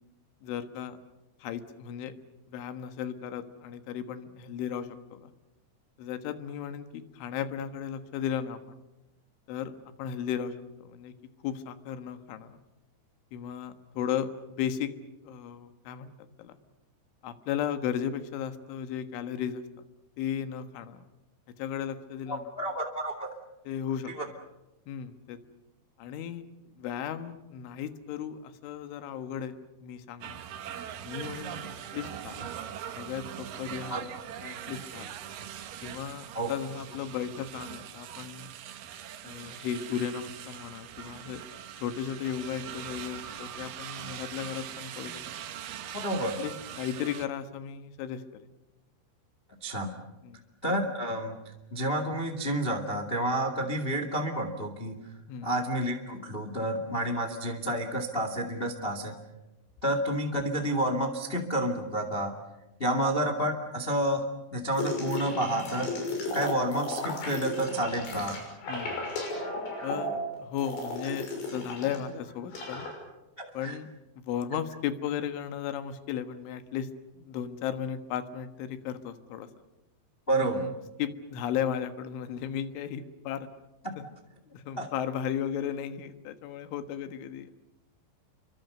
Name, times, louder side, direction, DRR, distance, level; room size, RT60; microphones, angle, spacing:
voice 1, 0.4-1.0 1.4-2.1 2.5-5.3 6.0-8.8 9.5-11.1 11.4-12.6 13.3-14.9 15.2-16.1 16.4-16.6 17.2-19.6 20.2-21.0 21.6-22.5 23.7-24.1 24.9-25.4 26.0-30.4 31.0-32.5 33.0-34.0 34.4-35.2 35.8-38.5 39.2-41.4 41.8-45.2 46.4-48.5 50.2-50.4 55.3-55.5 62.9-63.0 68.7-68.9 69.8-72.9 73.5-73.9 74.2-76.9 77.2-79.5 80.4-80.7 81.0-83.5 84.5-87.5, left 9 dB, 85° left, 10 dB, 3.9 m, -35 dB
voice 2, 22.3-23.3 24.1-24.2 33.9-34.0 36.3-36.5 45.9-46.4 49.6-49.9 50.6-51.4 51.7-54.9 55.4-59.1 59.8-62.3 62.8-64.2 64.5-65.9 66.3-68.4 73.4-73.8 80.3-80.7 84.8-84.9, right 1 dB, 45° left, 6 dB, 0.7 m, -30 dB
sound 1, 30.2-47.3, right 9 dB, 65° right, 2.3 m, -41 dB
sound 2, 64.8-72.0 72.3-72.9, left 2 dB, 70° left, 8.5 m, -34 dB
29.5 x 24.5 x 6.7 m, 0.99 s
omnidirectional pair, 5.4 m